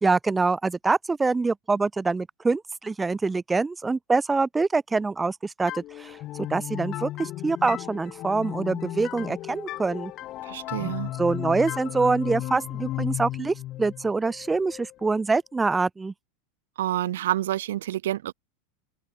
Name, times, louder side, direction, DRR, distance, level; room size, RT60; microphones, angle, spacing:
voice 1, 0.0-10.1 10.8-10.9 11.2-16.1, right 3 dB, 15° right, 1.1 m, -25 dB
sound 1, 5.7-15.2, left 15 dB, 45° left, 2.4 m, -35 dB
voice 2, 10.4-11.1 16.8-18.3, right 13 dB, 70° right, 1.5 m, -28 dB
hypercardioid pair, 95°, 0 cm